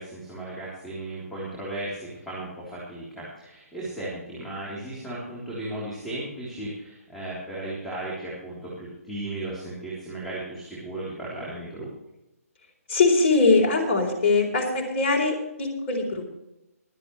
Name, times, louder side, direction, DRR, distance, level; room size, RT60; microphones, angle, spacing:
voice 1, 0.0-11.9, right 1 dB, 5° left, -8 dB, 3.7 m, -35 dB
voice 2, 12.9-16.4, left 3 dB, 35° left, 1 dB, 4.1 m, -22 dB
24.0 x 8.3 x 3.2 m, 0.90 s
hypercardioid pair, 145°, 8 cm